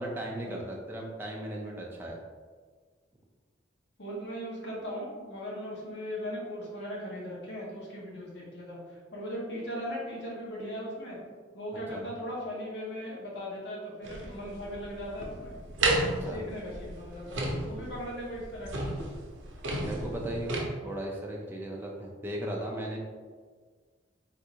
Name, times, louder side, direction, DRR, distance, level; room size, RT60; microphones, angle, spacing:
voice 1, 0.0-2.2 11.9-12.0 16.0-16.4 19.8-23.0, right 1 dB, 10° right, -2 dB, 0.3 m, -36 dB
voice 2, 4.0-11.2 11.5-15.6 16.2-19.0, equal, 60° left, -4 dB, 0.9 m, -38 dB
sound 1, 14.0-20.6, right 2 dB, 70° right, 0.6 m, -33 dB
3.5 x 2.5 x 2.8 m, 1.5 s
head